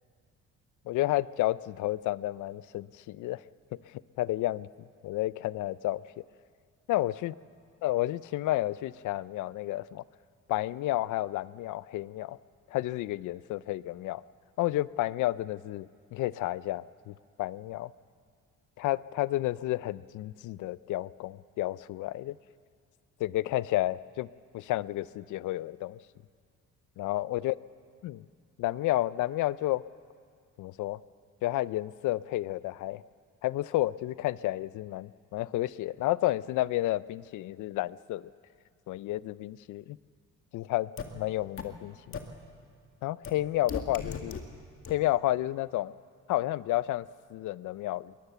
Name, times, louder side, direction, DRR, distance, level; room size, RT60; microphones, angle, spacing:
voice 1, 0.9-3.4 3.7-4.7 5.0-6.2 6.9-7.3 7.8-10.0 10.5-12.4 12.7-14.2 14.6-17.9 18.8-22.4 23.2-24.3 24.5-26.0 27.0-27.5 28.0-28.2 28.6-29.8 30.6-31.0 31.4-33.0 33.4-38.3 38.9-40.0 40.5-42.1 43.0-44.4 44.9-45.9 46.3-48.1, left 16 dB, 80° left, 19 dB, 0.5 m, -31 dB
sound 1, 41.0-41.1 41.6-41.7 42.1-42.2 43.2-43.3 43.7-44.4 44.8-44.9, left 6 dB, 45° left, 2.0 m, -35 dB
22.0 x 19.0 x 6.9 m, 2.1 s
cardioid pair, 90°, 30 cm